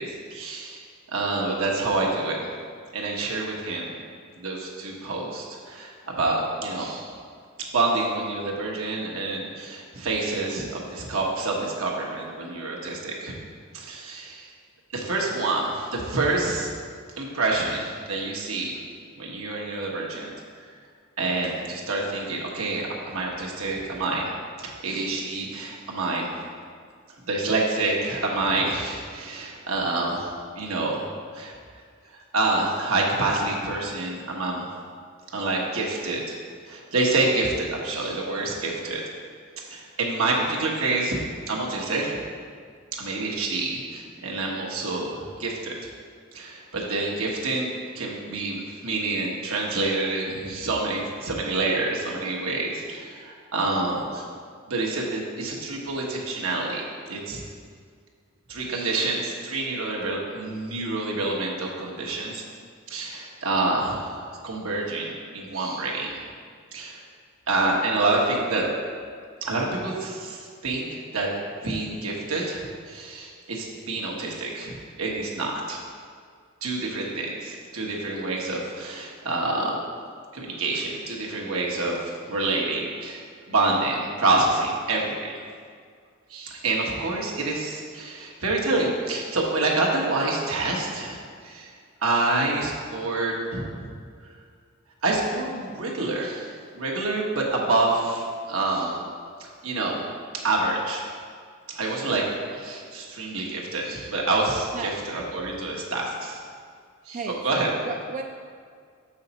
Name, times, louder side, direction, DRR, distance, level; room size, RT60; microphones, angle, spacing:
voice 1, 0.0-2.5 2.9-4.0 4.4-7.1 7.6-13.3 13.7-14.5 14.9-16.7 17.2-18.8 19.2-20.7 21.2-24.3 24.6-26.3 27.3-30.3 30.5-31.5 32.1-34.7 35.3-36.4 36.6-39.0 39.7-41.2 41.5-42.2 42.9-45.7 46.3-54.2 54.7-57.4 58.5-62.4 62.9-66.1 66.7-67.0 67.5-68.6 69.4-71.3 71.6-75.8 76.6-79.8 80.3-85.3 86.3-91.7 92.0-93.9 95.0-96.5 96.7-99.0 99.4-100.0 100.4-101.0 101.7-102.3 102.5-106.4 107.0-107.7, right 2 dB, 85° right, -2 dB, 1.2 m, -27 dB
voice 2, 107.1-108.2, right 4 dB, 35° right, 3 dB, 0.3 m, -33 dB
6.8 x 5.6 x 4.2 m, 2.1 s
head